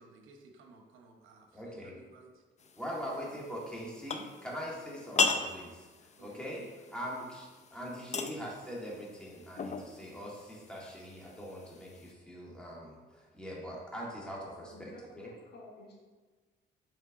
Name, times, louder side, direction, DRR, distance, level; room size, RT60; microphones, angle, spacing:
voice 1, 0.0-2.4 3.0-3.4 6.1-6.4 7.7-7.8, right 3 dB, 85° right, 3 dB, 0.9 m, -57 dB
voice 2, 1.5-2.0 2.8-5.9 6.2-6.7 6.9-14.9 15.2-15.3, equal, 5° left, -4 dB, 1.9 m, -42 dB
sound 1, 2.6-12.1, left 4 dB, 35° left, 0.5 m, -38 dB
voice 3, 14.7-15.9, left 1 dB, 55° left, -3 dB, 1.8 m, -51 dB
6.6 x 4.5 x 3.7 m, 1.3 s
cardioid pair, 90°, 20 cm